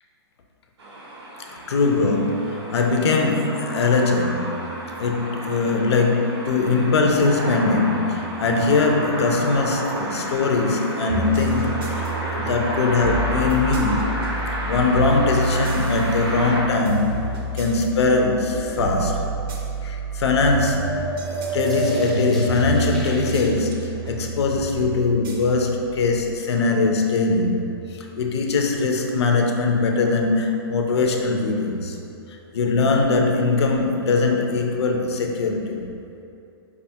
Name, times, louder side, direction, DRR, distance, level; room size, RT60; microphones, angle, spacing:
sound 1, 0.8-16.6, right 1 dB, 90° right, 0.8 m, -31 dB
voice 1, 1.7-4.7 5.0-12.1 12.4-14.1 14.6-17.2 17.5-19.3 19.8-32.0 32.5-35.9, left 3 dB, 90° left, 2 dB, 0.5 m, -21 dB
sound 2, 11.1-26.3, right 3 dB, 60° right, 0.6 m, -29 dB
sound 3, 20.2-23.5, equal, ahead, 0.4 m, -29 dB
4.8 x 2.3 x 2.7 m, 2.6 s
hypercardioid pair, 160°, 14 cm